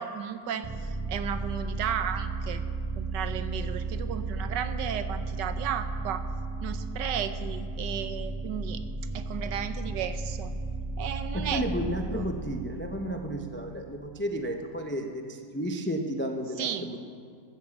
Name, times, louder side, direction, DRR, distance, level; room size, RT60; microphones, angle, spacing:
voice 1, 0.0-2.6 3.0-6.2 6.6-8.8 9.1-10.5 11.0-12.3 16.6-16.9, right 8 dB, 80° right, 10 dB, 1.4 m, -34 dB
sound 1, 0.6-14.1, right 3 dB, 20° right, 1.2 m, -34 dB
voice 2, 11.3-17.0, equal, 15° left, 3 dB, 0.3 m, -32 dB
14.0 x 10.0 x 7.2 m, 2.3 s
omnidirectional pair, 1.9 m